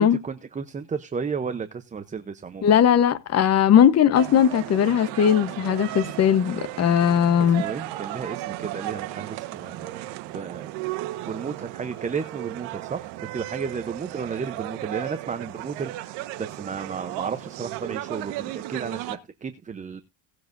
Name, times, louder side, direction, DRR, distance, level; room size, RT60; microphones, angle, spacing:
voice 1, 0.0-2.8 7.6-10.0 10.3-10.7 11.3-20.0, right 5 dB, 15° right, 0.8 m, -33 dB
voice 2, 2.6-7.6, left 9 dB, 35° left, 1.1 m, -19 dB
sound 1, 4.1-19.2, right 15 dB, 70° right, 1.3 m, -35 dB
18.0 x 7.9 x 2.6 m
supercardioid pair, 120°, 42 cm